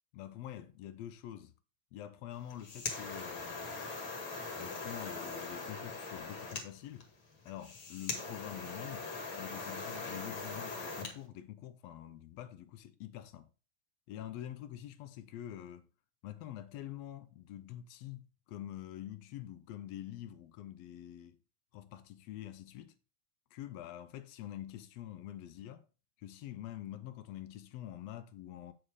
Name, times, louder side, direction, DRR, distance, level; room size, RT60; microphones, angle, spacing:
voice 1, 0.1-1.5 1.9-3.8 4.6-7.1 7.4-9.1 9.4-13.5 14.1-15.9 16.2-21.4 21.7-22.9 23.5-25.8 26.2-28.7, left 12 dB, 75° left, 1.5 m, -46 dB
sound 1, 2.4-11.2, left 4 dB, 45° left, 2.2 m, -41 dB
8.2 x 4.5 x 4.7 m
omnidirectional pair, 3.5 m